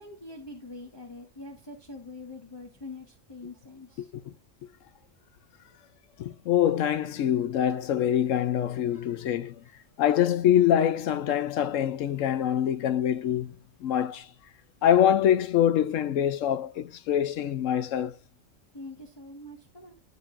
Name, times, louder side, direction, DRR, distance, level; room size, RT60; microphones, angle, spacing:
voice 1, 0.0-4.1 8.9-9.0 18.7-19.9, left 2 dB, 20° left, 1.1 m, -44 dB
voice 2, 4.0-4.3 4.6-4.7 6.2-9.6 10.0-13.5 13.8-14.3 14.8-18.2, left 10 dB, 75° left, 1.0 m, -25 dB
10.5 x 6.6 x 2.5 m
omnidirectional pair, 1.4 m